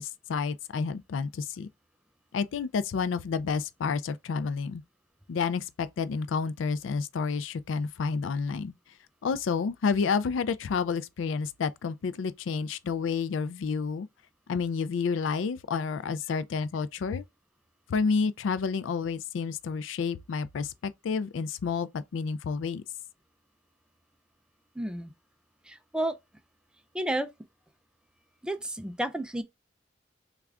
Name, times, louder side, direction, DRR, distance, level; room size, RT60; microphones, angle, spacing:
voice 1, 0.0-1.7 2.3-4.8 5.3-8.7 9.2-14.1 14.5-17.2 17.9-22.8, left 5 dB, 85° left, 0.4 m, -30 dB
voice 2, 24.8-25.1 25.7-26.1 26.9-27.3 28.4-29.4, right 1 dB, 5° right, 0.4 m, -31 dB
3.5 x 2.4 x 3.3 m
head